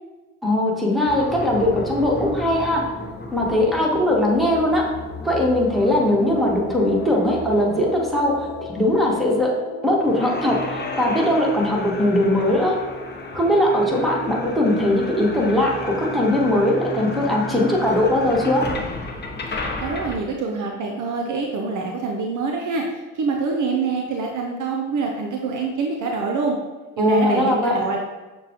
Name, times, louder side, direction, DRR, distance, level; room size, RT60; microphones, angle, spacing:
voice 1, 0.4-2.9 3.3-4.9 5.2-9.6 9.8-12.8 13.3-18.7 27.0-27.8, left 1 dB, ahead, -2 dB, 1.3 m, -20 dB
sound 1, 1.0-9.0 10.0-20.2, left 2 dB, 25° left, 0.7 m, -33 dB
sound 2, 5.5-14.1, left 4 dB, 60° left, 0.9 m, -38 dB
voice 2, 19.8-26.6 27.0-28.0, right 4 dB, 50° right, 1 dB, 0.6 m, -25 dB
6.6 x 2.3 x 2.9 m, 1.2 s
hypercardioid pair, 50°, 40 cm